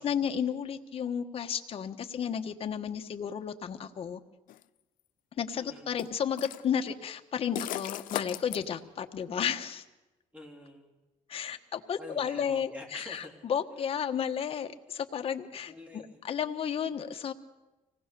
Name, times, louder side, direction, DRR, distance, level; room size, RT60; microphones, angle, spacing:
voice 1, 0.0-4.2 5.4-9.8 11.3-15.7 16.2-17.3, left 8 dB, 45° left, 6 dB, 1.3 m, -33 dB
sound 1, 4.5-4.6 6.0-6.7 7.6-8.6, left 14 dB, 80° left, 0.6 m, -36 dB
voice 2, 5.6-6.0 10.3-11.0 12.0-13.3 15.7-16.3, left 1 dB, 10° right, 2 dB, 3.8 m, -47 dB
25.0 x 19.0 x 6.9 m, 1.1 s
cardioid pair, 150°, 14 cm